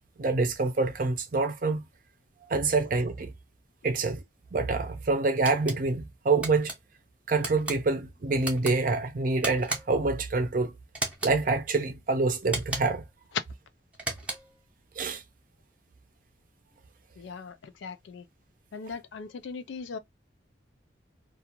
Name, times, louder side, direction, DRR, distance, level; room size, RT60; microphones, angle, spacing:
voice 1, 0.2-1.8 2.5-3.3 3.8-4.2 4.5-6.7 7.3-10.7 11.2-13.1 15.0-15.2, right 3 dB, 45° right, 0.5 m, -26 dB
sound 1, 5.4-5.8 6.4-6.8 7.4-7.8 8.4-8.7 9.4-10.0 10.9-11.4 12.4-13.0 13.9-14.6, right 2 dB, 5° right, 0.6 m, -35 dB
voice 2, 17.2-18.3 18.7-20.0, left 4 dB, 85° left, 0.4 m, -40 dB
2.4 x 2.3 x 2.8 m
head